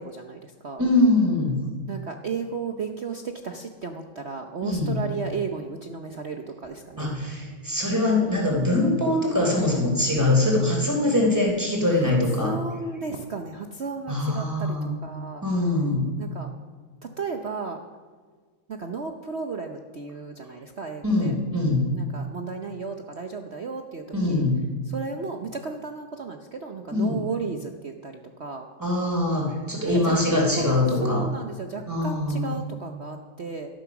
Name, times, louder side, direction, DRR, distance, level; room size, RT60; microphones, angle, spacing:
voice 1, 0.0-0.8 1.9-7.1 11.9-12.1 12.4-15.5 16.2-16.5 17.2-17.8 18.7-21.3 21.9-24.5 24.9-28.7 29.9-30.2 30.6-33.7, right 4 dB, 60° right, 4 dB, 0.7 m, -34 dB
voice 2, 0.8-1.6 4.6-5.0 7.0-12.5 14.1-14.9 15.4-16.1 21.0-21.9 24.1-24.6 26.9-27.2 28.8-31.2 31.9-32.6, left 2 dB, 10° right, -2 dB, 3.5 m, -23 dB
13.0 x 12.0 x 6.0 m, 1.5 s
omnidirectional pair, 2.2 m